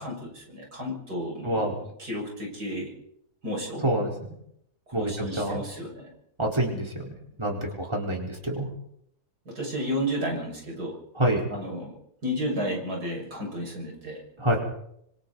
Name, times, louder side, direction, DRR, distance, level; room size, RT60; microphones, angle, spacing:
voice 1, 0.0-2.9 3.4-3.8 5.0-6.1 9.5-11.0 11.5-12.0 12.2-14.2, equal, 80° right, 0 dB, 6.9 m, -32 dB
voice 2, 1.4-1.7 3.8-4.1 4.9-5.1 5.4-5.6 6.4-6.9 7.4-8.7 11.2-11.4 14.4-14.6, right 1 dB, 15° right, -1 dB, 4.7 m, -26 dB
26.5 x 26.0 x 4.2 m, 0.74 s
omnidirectional pair, 1.7 m